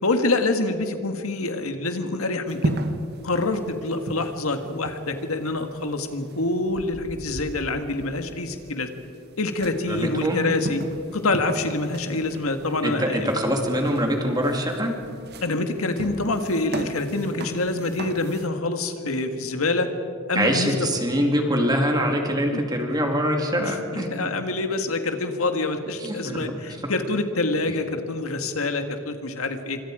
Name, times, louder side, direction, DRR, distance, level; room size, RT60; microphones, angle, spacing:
voice 1, 0.0-2.8 3.2-8.9 9.4-10.8 11.1-13.3 15.4-19.9 20.3-20.9 22.5-22.6 23.6-29.8, left 2 dB, 80° left, 7 dB, 1.8 m, -26 dB
sound 1, 2.5-18.5, right 1 dB, 50° right, 1.4 m, -35 dB
voice 2, 9.9-10.4 12.8-14.9 20.3-24.1 26.0-26.4, equal, 20° right, 2 dB, 2.7 m, -24 dB
26.0 x 25.5 x 5.0 m, 2.4 s
head